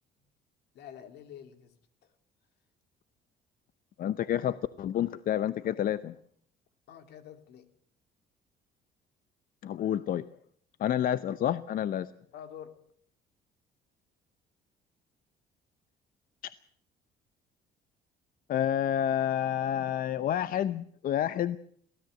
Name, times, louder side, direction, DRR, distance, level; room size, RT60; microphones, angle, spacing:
voice 1, 0.7-1.7 6.9-7.7 12.3-12.7, left 9 dB, 75° left, 9 dB, 2.9 m, -47 dB
voice 2, 4.0-6.2 9.6-10.3 10.8-12.1 16.4-16.5 18.5-21.6, left 10 dB, 55° left, 15 dB, 0.8 m, -29 dB
22.5 x 17.0 x 7.8 m, 0.63 s
cardioid pair, 110°, 17 cm